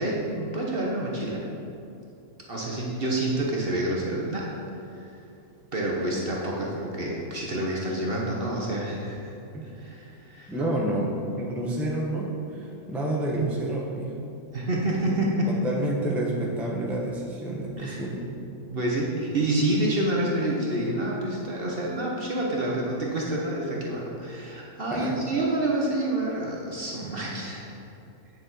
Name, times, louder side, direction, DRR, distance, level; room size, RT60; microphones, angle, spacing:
voice 1, 0.0-1.5 2.5-4.5 4.9-5.2 5.7-9.3 9.7-10.5 14.5-15.5 17.8-18.0 18.7-27.7, right 1 dB, 45° right, -3 dB, 1.0 m, -28 dB
voice 2, 10.5-14.1 15.5-18.3 24.9-25.2, right 1 dB, ahead, -3 dB, 0.7 m, -29 dB
8.4 x 6.7 x 4.0 m, 2.7 s
omnidirectional pair, 1.6 m